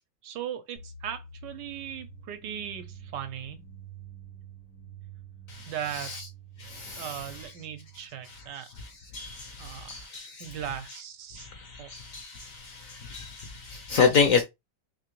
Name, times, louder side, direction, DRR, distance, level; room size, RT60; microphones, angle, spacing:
voice 1, 0.2-2.8 3.1-3.6 5.7-6.1 7.0-8.7 9.6-10.0 10.4-11.5 11.8-11.9, right 9 dB, 75° right, 1.3 m, -37 dB
sound 1, 0.8-8.5, right 6 dB, 90° left, 1.8 m, -48 dB
voice 2, 5.5-6.3 6.6-7.5 8.2-8.4 8.8-11.0 11.4-14.4, left 5 dB, 60° left, 0.9 m, -30 dB
3.7 x 2.9 x 3.0 m
omnidirectional pair, 2.0 m